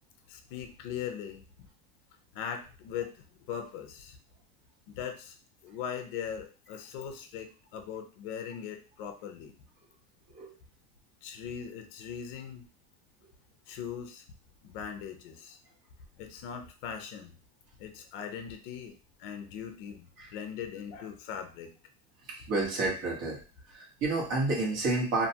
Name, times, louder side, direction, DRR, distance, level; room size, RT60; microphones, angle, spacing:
voice 1, 0.3-1.4 2.3-4.2 4.9-5.4 5.6-9.6 11.2-12.6 13.7-14.2 14.6-15.6 16.2-17.3 17.8-21.7, left 8 dB, 40° left, 6 dB, 0.4 m, -40 dB
voice 2, 22.5-23.4 23.7-25.3, right 2 dB, 60° right, -2 dB, 1.3 m, -29 dB
2.5 x 2.2 x 2.7 m, 0.36 s
supercardioid pair, 165°, 44 cm